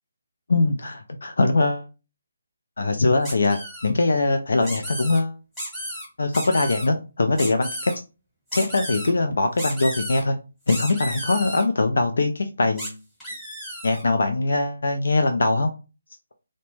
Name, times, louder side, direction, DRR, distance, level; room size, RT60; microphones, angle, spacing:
voice 1, 0.5-1.9 2.8-5.4 6.2-7.9 8.5-10.4 10.7-13.0 13.8-15.7, left 2 dB, 65° left, 6 dB, 0.3 m, -22 dB
sound 1, 3.2-3.9 4.6-5.2 5.6-6.1 6.3-6.9 7.4-7.9 8.5-9.1 9.6-10.2 10.7-11.6 12.8-12.9 13.2-14.0, equal, 5° left, 1.0 m, -33 dB
2.0 x 2.0 x 3.0 m, 0.31 s
figure-of-eight pair, 150°, 0 cm